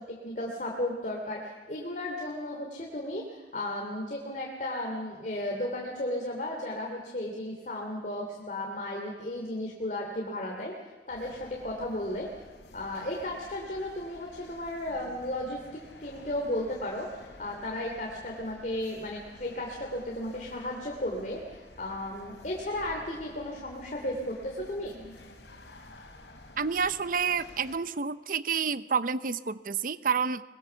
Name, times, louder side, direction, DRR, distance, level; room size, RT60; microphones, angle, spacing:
voice 1, 0.0-10.7 11.1-12.3 12.7-24.9, left 1 dB, 45° left, 0 dB, 3.0 m, -34 dB
sound 1, 11.1-27.8, left 1 dB, 80° left, 3.9 m, -51 dB
voice 2, 26.6-30.4, right 6 dB, 50° right, 14 dB, 0.7 m, -29 dB
24.0 x 21.5 x 7.0 m, 1.3 s
head